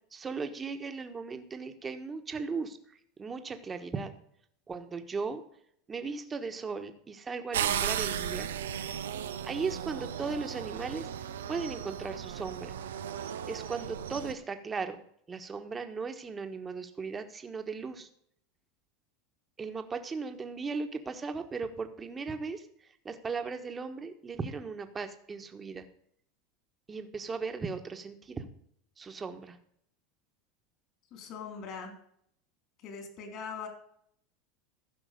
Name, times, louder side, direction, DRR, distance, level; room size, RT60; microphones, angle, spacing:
voice 1, 0.1-2.8 3.2-4.1 4.7-5.4 5.9-8.5 9.4-11.1 11.5-12.8 13.5-15.0 15.3-18.1 19.6-25.9 26.9-28.5 29.0-29.6, right 4 dB, 20° right, 7 dB, 1.4 m, -37 dB
sound 1, 7.5-14.3, right 9 dB, 90° right, 0.7 m, -35 dB
voice 2, 31.1-32.0 32.8-33.7, left 5 dB, 50° left, 5 dB, 3.6 m, -41 dB
14.5 x 5.8 x 5.2 m, 0.68 s
hypercardioid pair, 105°, 0 cm